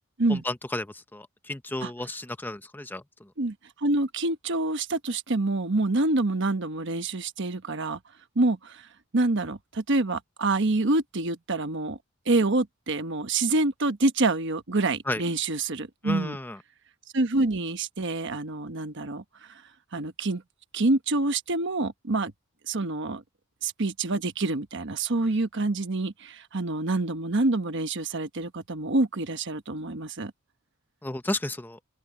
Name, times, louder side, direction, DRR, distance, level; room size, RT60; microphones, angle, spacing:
voice 1, 0.3-0.9 1.1-3.0 15.1-15.2 16.0-16.6 31.0-31.8, left 1 dB, 10° left, 0.6 m, -32 dB
voice 2, 3.8-8.0 8.4-8.9 9.1-12.0 12.3-16.4 17.1-19.2 19.9-20.4 20.7-22.3 22.7-23.2 23.6-30.3, right 2 dB, 60° right, 1.2 m, -26 dB
open air
head